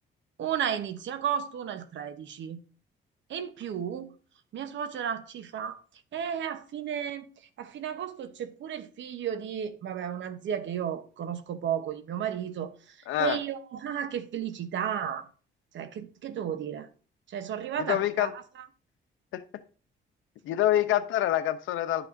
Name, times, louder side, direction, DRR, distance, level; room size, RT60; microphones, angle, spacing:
voice 1, 0.4-2.6 3.3-4.1 4.5-5.8 6.1-7.3 7.6-15.3 15.7-16.9 17.3-18.3, right 8 dB, 70° right, 1.0 m, -33 dB
voice 2, 13.1-13.4 17.8-18.3 19.3-19.4 20.4-22.1, left 13 dB, 85° left, 0.7 m, -26 dB
11.0 x 5.9 x 2.7 m
cardioid pair, 90°, 20 cm